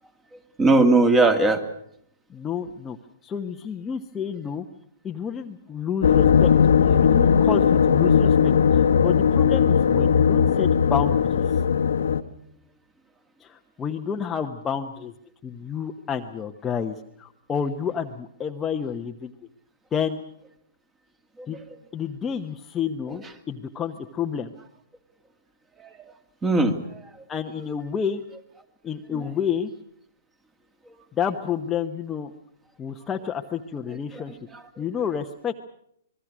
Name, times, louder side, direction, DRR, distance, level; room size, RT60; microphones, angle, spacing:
voice 1, 0.6-1.6 21.5-21.6 26.4-27.0 29.1-29.2 34.1-34.2 34.5-34.6, right 2 dB, 15° right, 9 dB, 2.4 m, -19 dB
voice 2, 2.3-3.0 3.2-4.7 5.0-6.5 6.8-11.4 13.4-15.1 15.4-19.3 19.9-20.2 21.5-21.6 21.9-24.5 27.3-28.2 28.8-29.7 31.1-32.3 32.8-34.4 34.8-35.5, left 7 dB, 15° left, 4 dB, 1.0 m, -29 dB
sound 1, 6.0-12.2, left 7 dB, 80° left, 1.3 m, -18 dB
26.5 x 21.0 x 6.2 m, 0.71 s
hypercardioid pair, 145°, 0 cm